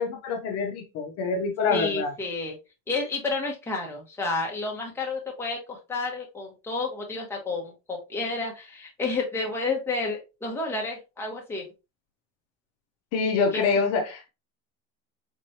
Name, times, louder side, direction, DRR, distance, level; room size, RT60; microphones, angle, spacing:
voice 1, 0.0-2.1 13.1-14.3, left 5 dB, 45° left, 0.8 m, -26 dB
voice 2, 1.7-2.6 2.9-11.7 13.5-13.6, left 3 dB, 5° left, 1.0 m, -30 dB
4.4 x 3.1 x 2.7 m
cardioid pair, 155°, 35 cm